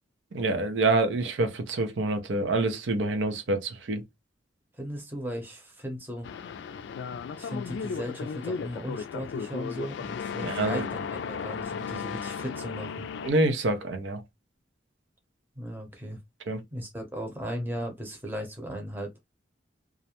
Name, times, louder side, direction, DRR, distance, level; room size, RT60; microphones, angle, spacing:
voice 1, 0.3-4.0 10.4-10.8 13.2-14.2 16.5-16.6, right 2 dB, 85° right, 0.5 m, -26 dB
voice 2, 4.7-6.3 7.4-13.1 15.6-16.2 16.7-19.1, equal, 10° right, 0.7 m, -37 dB
sound 1, 6.2-13.3, left 6 dB, 75° left, 0.3 m, -35 dB
2.4 x 2.1 x 2.8 m
head